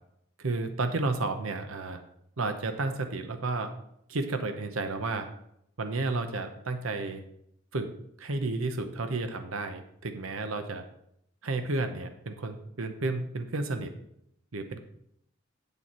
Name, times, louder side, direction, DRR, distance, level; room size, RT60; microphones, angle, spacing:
voice 1, 0.4-2.0 2.4-3.7 4.1-5.3 5.8-7.2 7.7-7.9 8.2-10.8 11.4-13.9 14.5-14.8, right 3 dB, 90° right, 7 dB, 0.9 m, -32 dB
8.5 x 7.0 x 4.3 m, 0.74 s
head